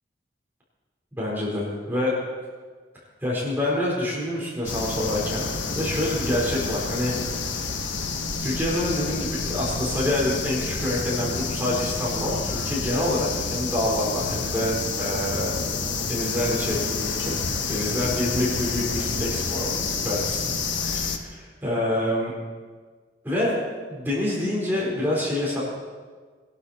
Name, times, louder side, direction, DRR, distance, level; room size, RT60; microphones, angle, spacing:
voice 1, 1.1-2.1 3.2-5.5 5.7-7.1 8.4-15.6 16.1-17.4 17.7-20.4 20.8-22.3 23.2-23.5 23.9-25.6, left 1 dB, 10° right, -5 dB, 4.2 m, -27 dB
sound 1, 4.6-21.2, left 4 dB, 85° left, 1.3 m, -29 dB
21.0 x 12.0 x 4.3 m, 1.5 s
head